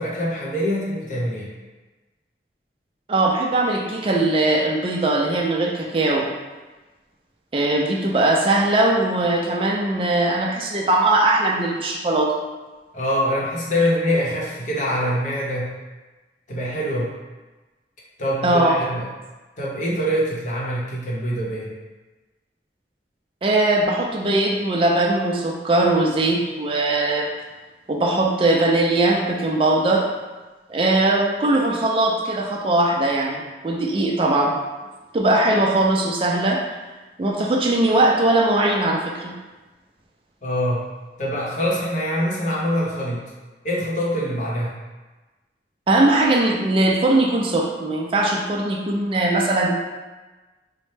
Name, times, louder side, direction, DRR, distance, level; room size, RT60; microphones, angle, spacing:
voice 1, 0.0-1.5 12.9-15.7 16.5-17.1 18.2-19.1 19.6-21.7 40.4-40.8 41.2-43.2 43.6-44.7, equal, 45° left, -4 dB, 0.8 m, -24 dB
voice 2, 3.1-6.3 7.5-12.4 18.4-18.8 23.4-27.3 27.9-30.1 30.7-34.5 35.1-36.6 37.2-39.4 45.9-49.7, right 2 dB, 30° right, -1 dB, 0.4 m, -20 dB
4.1 x 2.1 x 3.2 m, 1.2 s
head